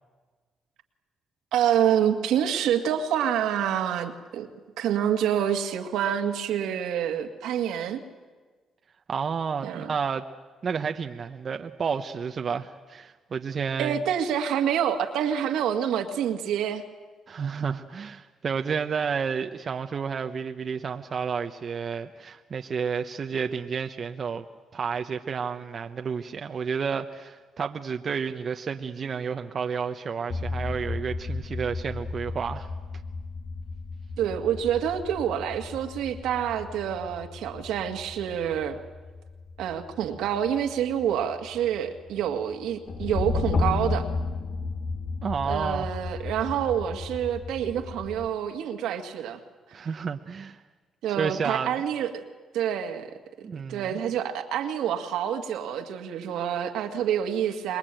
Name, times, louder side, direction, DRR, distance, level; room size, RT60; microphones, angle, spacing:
voice 1, 1.5-4.5 4.8-8.0 9.6-9.9 13.8-16.8 34.2-38.8 39.6-44.1 45.4-49.4 51.0-52.2 52.5-53.1 53.7-57.8, right 9 dB, 85° right, 5 dB, 2.0 m, -27 dB
voice 2, 9.1-10.2 10.6-14.0 17.3-24.5 24.7-32.7 45.2-45.9 49.7-50.6 51.2-51.7 53.4-54.0, right 6 dB, 45° right, 6 dB, 1.0 m, -31 dB
sound 1, 30.3-48.3, left 3 dB, 50° left, 2.2 m, -34 dB
26.0 x 21.0 x 9.1 m, 1.4 s
cardioid pair, 90°, 0 cm